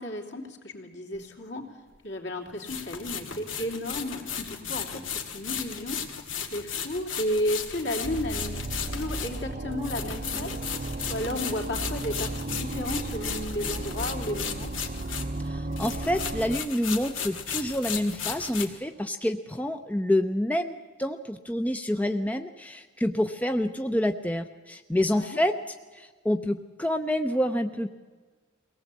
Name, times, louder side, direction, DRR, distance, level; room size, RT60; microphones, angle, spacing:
voice 1, 0.0-1.7 2.0-5.0 5.3-6.0 6.5-10.5 11.1-14.7 25.0-25.4, left 1 dB, 60° left, 2 dB, 3.2 m, -33 dB
sound 1, 1.1-1.2 2.6-15.5 15.7-18.6, left 7 dB, 85° left, 2.3 m, -35 dB
sound 2, 8.0-16.6, right 2 dB, 40° right, 0.6 m, -35 dB
voice 2, 15.4-27.9, left 1 dB, 10° left, 7 dB, 0.6 m, -28 dB
23.0 x 18.0 x 8.4 m, 1.4 s
head